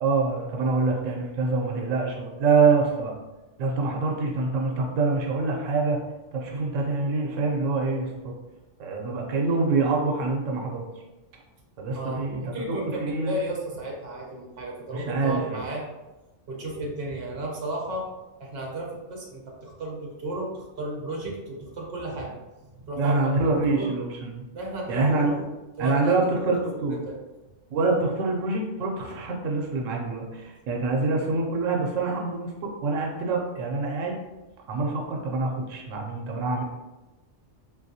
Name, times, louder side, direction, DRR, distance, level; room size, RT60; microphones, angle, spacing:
voice 1, 0.0-3.1 3.6-6.0 6.3-8.3 8.8-10.8 11.8-13.4 14.9-15.6 23.0-24.4 24.9-25.4 25.8-27.0 27.7-34.1 34.7-36.6, right 3 dB, 90° right, 0 dB, 1.0 m, -25 dB
voice 2, 11.9-15.8 16.5-18.1 18.4-22.4 22.7-23.3 23.7-23.9 24.5-25.4 25.8-26.4 26.9-27.2, right 1 dB, 60° right, -2 dB, 0.9 m, -34 dB
3.4 x 2.5 x 2.7 m, 1.1 s
omnidirectional pair, 1.3 m